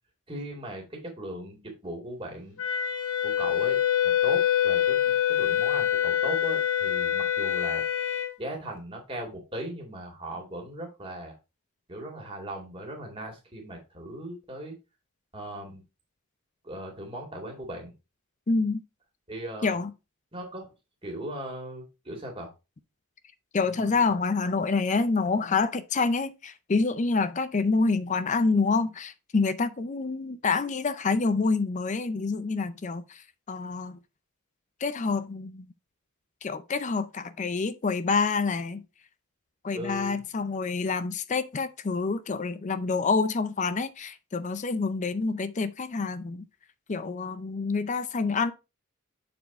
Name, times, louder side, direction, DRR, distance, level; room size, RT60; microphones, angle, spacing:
voice 1, 0.3-2.6 3.2-3.8 4.0-7.8 8.4-11.4 11.9-14.7 15.3-15.8 16.6-17.9 19.3-19.8 20.3-20.7 21.0-22.5 23.6-24.2 39.7-40.3, right 1 dB, 25° right, 2.3 m, -38 dB
Wind instrument woodwind instrument, 2.6-8.3, left 10 dB, 80° left, 1.6 m, -25 dB
voice 2, 18.5-18.8 19.6-19.9 23.5-34.0 34.8-35.7 36.4-38.8 39.6-46.4 46.9-48.5, left 4 dB, 35° left, 0.5 m, -27 dB
6.9 x 4.4 x 4.2 m
head